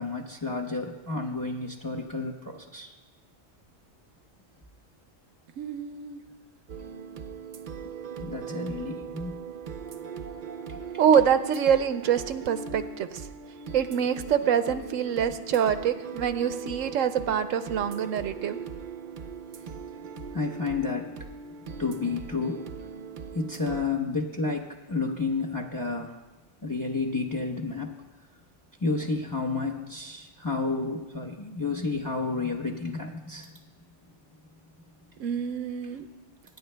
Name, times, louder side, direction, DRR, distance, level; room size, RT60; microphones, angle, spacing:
voice 1, 0.0-2.9 7.8-7.9 8.2-9.4 10.7-10.8 20.3-21.2 21.8-22.6 23.3-26.2 26.6-28.0 28.8-33.6, left 3 dB, 20° left, 2 dB, 0.8 m, -31 dB
voice 2, 5.6-6.2 11.0-13.2 13.7-18.6 35.2-36.1, right 8 dB, 85° right, 10 dB, 1.0 m, -25 dB
sound 1, 6.7-23.8, right 6 dB, 50° right, 0.6 m, -40 dB
25.0 x 10.0 x 2.2 m, 1.1 s
omnidirectional pair, 1.3 m